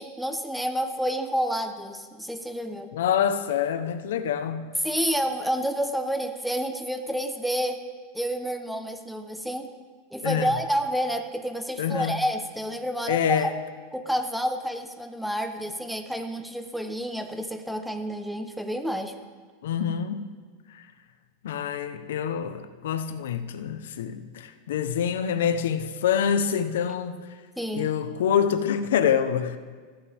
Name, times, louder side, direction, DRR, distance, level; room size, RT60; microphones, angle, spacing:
voice 1, 0.0-2.9 4.8-7.8 8.1-9.7 10.1-13.5 13.9-19.1 27.6-27.9, equal, ahead, 1.1 m, -29 dB
voice 2, 2.9-4.7 10.2-10.5 11.8-12.2 13.1-13.5 19.6-20.3 20.7-20.8 21.4-27.2 27.7-29.6, left 8 dB, 90° left, 1.1 m, -26 dB
22.5 x 16.0 x 3.7 m
supercardioid pair, 145°, 0 cm